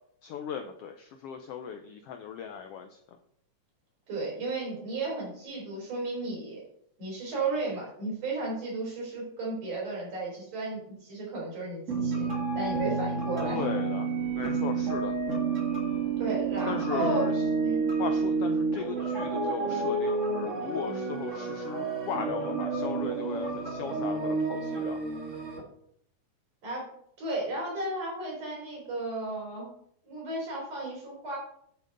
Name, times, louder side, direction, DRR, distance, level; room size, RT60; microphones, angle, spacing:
voice 1, 0.2-3.0 13.4-14.1 14.4-15.1 16.7-17.4 18.0-25.0, left 7 dB, 80° left, 6 dB, 1.3 m, -37 dB
voice 2, 4.1-6.6 7.0-12.3 12.5-13.6 16.2-17.2 17.6-17.9 26.6-26.9 27.2-29.7 30.0-31.4, right 2 dB, 55° right, -4 dB, 4.9 m, -34 dB
sound 1, 11.9-25.6, right 4 dB, 35° right, 1.3 m, -30 dB
10.5 x 8.4 x 3.9 m, 0.70 s
omnidirectional pair, 3.5 m